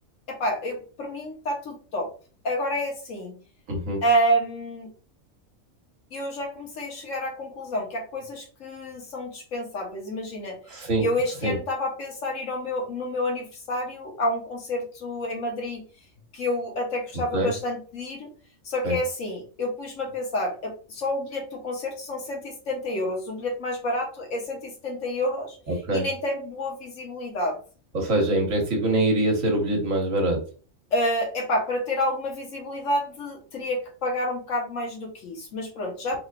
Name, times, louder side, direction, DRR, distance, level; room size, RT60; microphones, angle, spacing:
voice 1, 0.3-2.1 2.4-3.4 4.0-4.9 6.1-10.6 11.0-15.8 16.3-18.3 18.6-25.6 25.9-27.6 30.9-36.2, left 1 dB, 75° left, 0 dB, 1.5 m, -29 dB
voice 2, 3.7-4.0 10.7-11.0 11.4-11.5 17.3-17.5 18.8-19.0 25.7-26.1 27.9-30.4, right 1 dB, 85° right, 1 dB, 1.5 m, -24 dB
3.9 x 3.1 x 2.4 m, 0.39 s
omnidirectional pair, 1.4 m